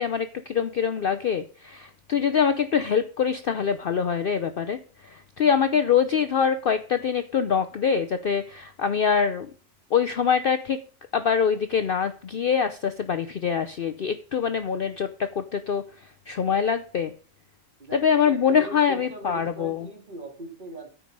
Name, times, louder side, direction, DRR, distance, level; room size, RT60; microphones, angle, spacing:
voice 1, 0.0-9.5 9.9-10.8 11.1-15.8 16.3-17.1 17.9-19.9, left 7 dB, 55° left, 10 dB, 0.7 m, -24 dB
voice 2, 17.8-20.9, right 1 dB, 35° right, 2 dB, 2.6 m, -40 dB
13.5 x 5.1 x 5.2 m, 0.40 s
omnidirectional pair, 1.4 m